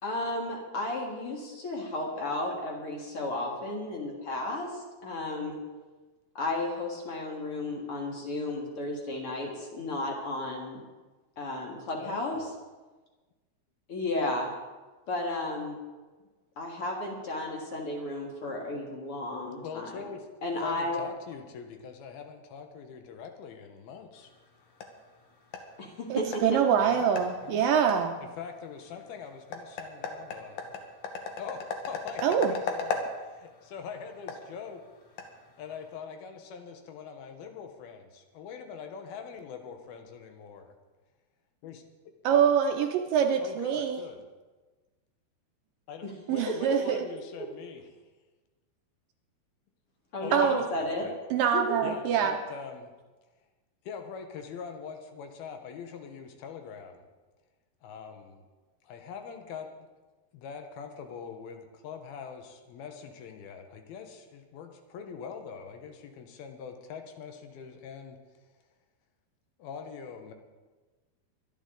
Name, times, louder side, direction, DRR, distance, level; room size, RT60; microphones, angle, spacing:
voice 1, 0.0-5.6 6.3-10.8 11.4-12.5 13.9-14.5 15.1-15.8 16.6-19.9 20.4-21.0 25.8-26.7 46.0-46.1 50.1-51.1 51.5-51.8, left 2 dB, 45° left, 0 dB, 2.1 m, -33 dB
voice 2, 12.0-12.5 19.6-20.3 20.6-24.3 26.8-27.7 28.2-30.7 31.4-34.8 35.6-40.8 41.6-42.1 43.4-44.3 45.9-47.9 50.2-51.1 51.8-52.9 53.8-57.0 57.8-58.4 58.8-59.9 60.3-68.2 69.6-70.3, left 6 dB, 80° left, 5 dB, 2.9 m, -43 dB
sound 1, 24.1-36.0, left 4 dB, 60° left, 2.3 m, -39 dB
voice 3, 26.1-28.2 32.2-32.5 42.2-44.0 46.3-47.0 50.3-50.6 51.3-52.4, right 8 dB, 75° right, 5 dB, 2.1 m, -25 dB
23.5 x 10.5 x 3.8 m, 1.3 s
omnidirectional pair, 4.5 m